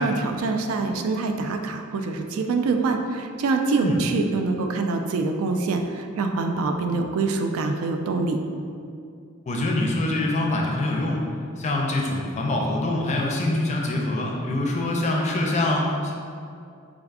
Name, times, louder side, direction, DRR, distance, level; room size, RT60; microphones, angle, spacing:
voice 1, 0.0-8.4, right 3 dB, 90° right, 5 dB, 0.3 m, -25 dB
voice 2, 9.4-11.2 11.6-16.1, left 1 dB, 35° left, -1 dB, 0.4 m, -24 dB
4.6 x 2.5 x 2.4 m, 2.4 s
head